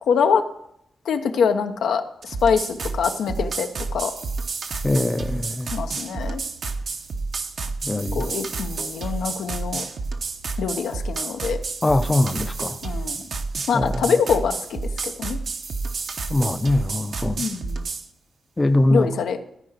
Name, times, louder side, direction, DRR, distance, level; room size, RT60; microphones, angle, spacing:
voice 1, 0.1-0.4 1.0-3.7 3.9-4.1 5.7-6.4 8.1-9.8 10.6-11.6 12.8-13.2 13.7-15.4 17.4-17.9 18.9-19.4, left 6 dB, 90° left, 0.9 m, -24 dB
sound 1, 2.2-18.1, right 4 dB, 65° right, 1.0 m, -30 dB
voice 2, 4.8-5.7 7.8-8.2 11.8-12.8 13.7-13.9 16.3-17.4 18.6-19.1, left 1 dB, 20° left, 0.6 m, -21 dB
14.0 x 4.8 x 8.1 m
cardioid pair, 90°, 0 cm